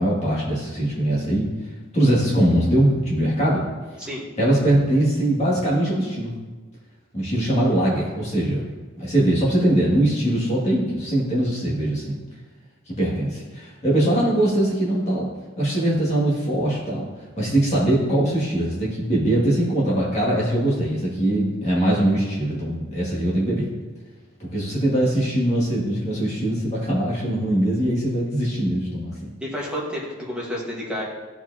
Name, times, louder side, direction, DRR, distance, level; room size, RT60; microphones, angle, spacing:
voice 1, 0.0-1.5 1.9-3.7 4.4-6.3 7.1-8.6 9.0-12.2 12.9-15.3 15.6-17.0 17.4-23.7 24.4-29.3, right 1 dB, 35° left, -6 dB, 2.0 m, -21 dB
voice 2, 29.4-31.0, equal, 5° right, -5 dB, 1.4 m, -30 dB
13.5 x 4.5 x 2.8 m, 1.3 s
head